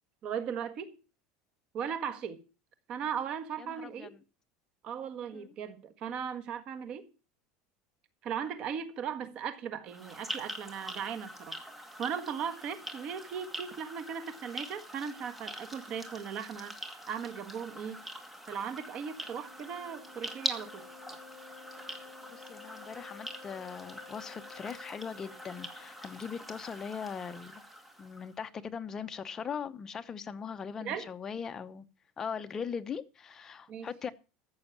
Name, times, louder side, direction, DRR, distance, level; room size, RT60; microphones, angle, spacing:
voice 1, 0.2-1.0 1.7-2.4 2.9-4.1 4.8-7.1 8.2-11.6 12.0-16.7 17.1-18.1 18.5-20.9 30.8-31.1 33.7-33.9, right 7 dB, 40° right, 1.6 m, -37 dB
voice 2, 3.6-4.1 5.3-5.5 22.3-27.6 28.0-31.9 32.2-34.1, left 6 dB, 20° left, 0.8 m, -40 dB
sound 1, 9.9-28.3, equal, 5° right, 1.7 m, -44 dB
Wind instrument woodwind instrument, 19.0-26.1, left 6 dB, 50° left, 6.3 m, -54 dB
14.5 x 6.4 x 7.2 m
cardioid pair, 155°, 2 cm